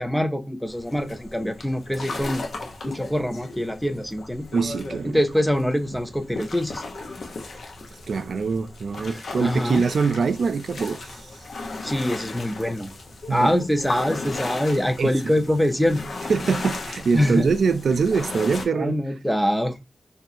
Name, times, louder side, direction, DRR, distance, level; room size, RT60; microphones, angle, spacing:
voice 1, 0.0-2.4 2.8-4.5 5.0-6.8 9.0-9.1 9.4-9.9 11.8-12.9 13.3-16.0 17.1-17.5 18.7-19.8, equal, 5° left, 0.5 m, -24 dB
sound 1, 0.7-18.7, left 3 dB, 70° left, 0.8 m, -36 dB
voice 2, 4.5-5.2 8.1-11.3 13.3-13.5 15.0-15.2 16.3-19.0, right 5 dB, 75° right, 0.4 m, -23 dB
2.7 x 2.5 x 4.2 m
wide cardioid pair, 95°, 0 cm